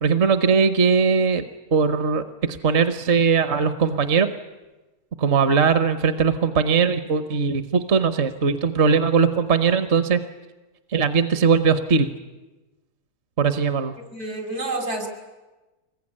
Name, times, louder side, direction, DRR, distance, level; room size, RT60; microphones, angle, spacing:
voice 1, 0.0-1.4 1.7-4.3 5.2-10.2 10.9-12.1 13.4-13.9, right 5 dB, 50° right, 10 dB, 1.2 m, -20 dB
voice 2, 14.1-15.1, right 2 dB, 75° right, 5 dB, 5.5 m, -28 dB
25.0 x 21.0 x 9.9 m, 1.1 s
omnidirectional pair, 1.6 m